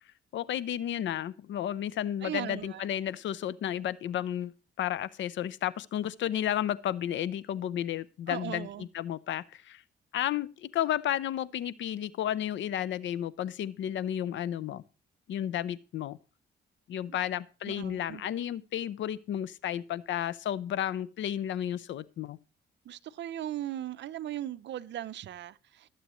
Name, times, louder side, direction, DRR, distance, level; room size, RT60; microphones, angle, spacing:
voice 1, 0.3-4.5 4.8-9.8 10.1-14.8 15.3-16.2 16.9-22.4, left 11 dB, 70° left, 0.7 m, -32 dB
voice 2, 2.2-2.8 8.3-8.9 17.7-18.2 22.9-25.9, right 12 dB, 65° right, 0.6 m, -38 dB
19.5 x 7.7 x 3.1 m
cardioid pair, 90°, 20 cm